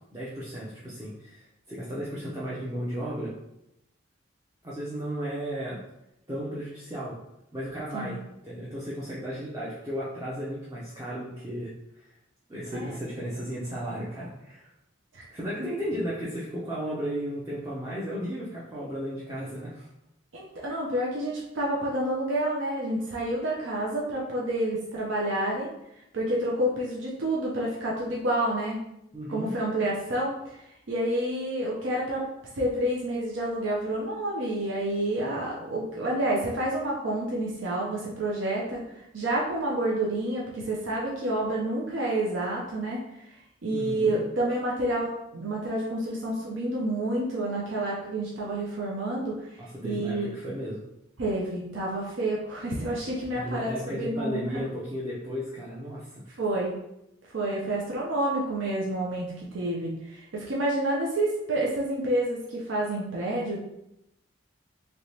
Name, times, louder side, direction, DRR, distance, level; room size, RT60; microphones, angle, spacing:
voice 1, 0.1-3.3 4.6-5.8 6.3-7.2 7.5-11.7 12.5-14.7 15.3-19.9 29.1-29.5 43.7-44.2 49.6-50.8 53.3-56.2, equal, 15° right, -8 dB, 0.5 m, -34 dB
voice 2, 20.3-25.7 26.1-28.8 29.3-30.6 30.9-32.2 32.5-38.8 39.1-43.0 43.6-49.4 49.8-50.3 51.2-54.4 56.3-56.7 57.3-63.6, right 1 dB, 70° right, -4 dB, 0.6 m, -29 dB
3.3 x 2.9 x 2.8 m, 0.83 s
head